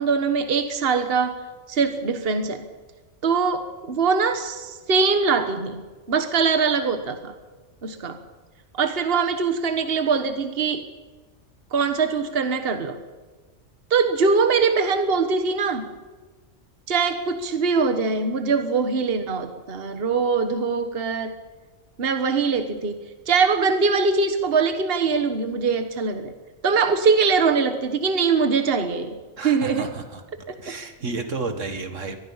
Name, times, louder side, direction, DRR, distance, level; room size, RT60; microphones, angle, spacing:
voice 1, 0.0-1.4 1.7-2.7 3.2-5.8 6.1-7.3 7.8-8.2 8.7-10.9 11.7-13.0 13.9-15.9 16.9-21.4 22.0-26.3 26.6-29.1 29.4-29.9 30.5-30.7, right 5 dB, 50° right, 8 dB, 1.5 m, -22 dB
voice 2, 29.4-30.2 30.6-32.2, right 3 dB, 80° right, 7 dB, 2.1 m, -31 dB
24.0 x 20.0 x 5.7 m, 1.3 s
omnidirectional pair, 1.3 m